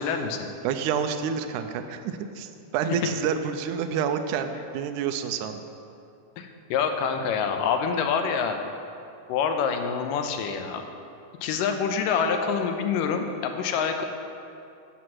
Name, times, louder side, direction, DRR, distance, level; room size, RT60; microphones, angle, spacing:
voice 1, 0.0-0.5 6.4-8.6 9.3-10.8 11.4-14.0, left 6 dB, 90° left, 6 dB, 2.3 m, -26 dB
voice 2, 0.6-5.7, right 7 dB, 80° right, 7 dB, 1.9 m, -28 dB
9.7 x 7.7 x 6.0 m, 2.6 s
omnidirectional pair, 3.8 m